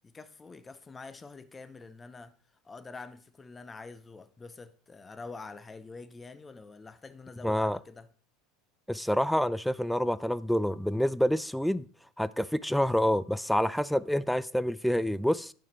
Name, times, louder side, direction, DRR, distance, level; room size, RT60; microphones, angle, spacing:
voice 1, 0.0-2.3 2.6-8.1, left 4 dB, 20° left, 0.7 m, -46 dB
voice 2, 7.4-7.8 8.9-11.9 12.2-15.5, equal, ahead, 0.3 m, -27 dB
9.2 x 6.7 x 4.3 m
figure-of-eight pair, 75°, 0 cm